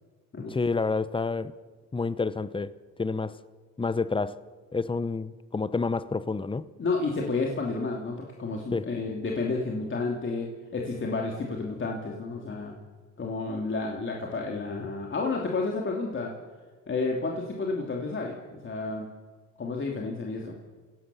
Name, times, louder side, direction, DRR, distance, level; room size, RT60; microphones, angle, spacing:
voice 1, 0.5-1.5 1.9-2.7 3.0-3.4 3.8-4.3 4.7-6.7 8.7-8.9, left 4 dB, 15° left, 15 dB, 0.9 m, -28 dB
voice 2, 6.8-12.8 13.2-16.3 16.9-19.1 19.6-20.5, left 3 dB, 40° left, 0 dB, 2.8 m, -31 dB
27.0 x 17.5 x 7.0 m, 1.4 s
cardioid pair, 90°, 30 cm